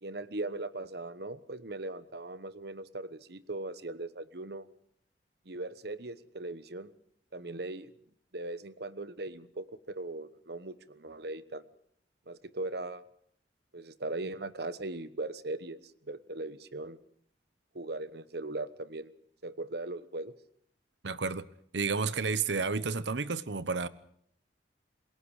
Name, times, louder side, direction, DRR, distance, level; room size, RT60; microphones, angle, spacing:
voice 1, 0.0-4.7 5.5-6.9 7.3-7.9 8.3-11.6 12.3-13.0 13.7-17.0 17.7-19.1 19.4-20.3, right 2 dB, 60° right, 1.1 m, -39 dB
voice 2, 21.0-21.4 21.7-23.9, right 4 dB, 85° right, 1.0 m, -31 dB
27.5 x 21.0 x 4.9 m
head